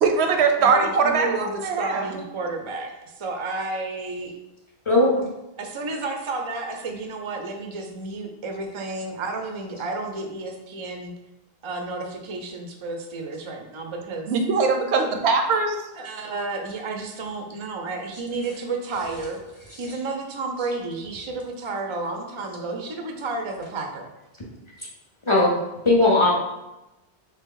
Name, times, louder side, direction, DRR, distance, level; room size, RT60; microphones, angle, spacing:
voice 1, 0.0-2.2 14.3-15.8, right 4 dB, 85° right, 4 dB, 0.9 m, -21 dB
voice 2, 0.6-4.3 5.6-11.1 11.6-14.3 16.0-19.4 19.8-24.1, right 3 dB, 45° right, 3 dB, 0.4 m, -31 dB
voice 3, 4.9-5.2 25.3-25.5 25.9-26.3, left 2 dB, 40° left, -3 dB, 0.5 m, -17 dB
3.3 x 2.8 x 3.7 m, 0.95 s
omnidirectional pair, 1.1 m